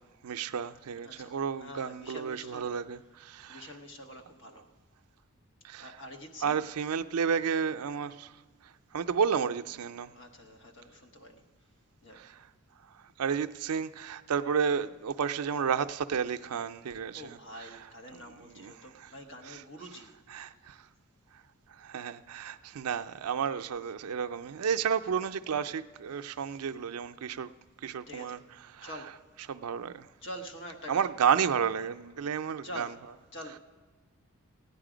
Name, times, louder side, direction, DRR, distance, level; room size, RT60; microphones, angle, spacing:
voice 1, 0.2-3.7 5.6-5.9 6.4-8.3 8.6-10.1 12.1-12.5 13.2-17.9 18.1-19.1 19.5-19.6 20.3-20.9 21.7-27.5 27.8-28.4 28.7-28.9 29.5-30.1 30.9-32.9, right 7 dB, 90° right, 0.4 m, -32 dB
voice 2, 1.0-2.7 3.5-4.7 5.8-6.6 10.1-11.4 12.0-12.2 17.1-20.1 26.1-26.4 28.1-28.4 28.8-29.2 30.2-31.1 32.6-33.0 33.3-33.6, equal, 55° left, 1.1 m, -46 dB
15.5 x 9.7 x 5.0 m
head